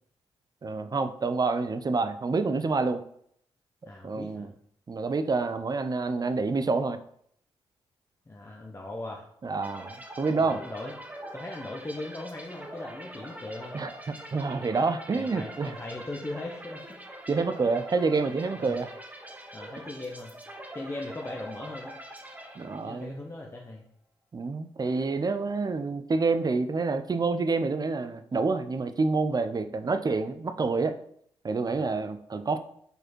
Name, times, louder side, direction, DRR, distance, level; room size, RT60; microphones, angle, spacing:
voice 1, 0.6-3.0 4.0-4.5 4.9-7.0 9.4-10.6 13.7-13.9 14.3-15.7 17.3-18.9 22.6-23.2 24.3-31.0 31.4-32.6, right 4 dB, 35° right, 10 dB, 0.6 m, -28 dB
voice 2, 3.9-4.5 8.3-9.3 10.4-10.9 11.3-13.8 15.2-17.0 18.6-18.8 19.5-20.3 20.7-22.0 22.8-23.8 31.6-31.9, left 2 dB, 25° left, -1 dB, 1.0 m, -39 dB
sound 1, 9.6-23.2, right 1 dB, 15° right, 1.3 m, -44 dB
5.3 x 4.2 x 4.5 m, 0.67 s
cardioid pair, 60°, 11 cm